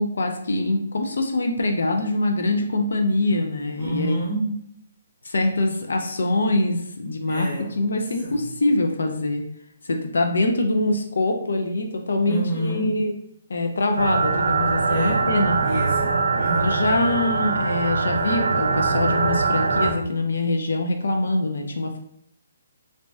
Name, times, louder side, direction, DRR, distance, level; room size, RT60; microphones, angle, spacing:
voice 1, 0.0-4.1 5.2-9.4 9.8-13.1 13.5-15.6 16.6-22.0, left 2 dB, 75° left, 3 dB, 0.4 m, -24 dB
voice 2, 3.8-4.6 7.3-7.9 8.2-8.4 12.2-13.1 14.9-15.3 15.6-16.8, right 1 dB, 5° left, -12 dB, 0.9 m, -28 dB
sound 1, 14.0-19.9, right 4 dB, 80° right, 0.4 m, -22 dB
2.6 x 2.1 x 3.3 m, 0.71 s
hypercardioid pair, 180°, 0 cm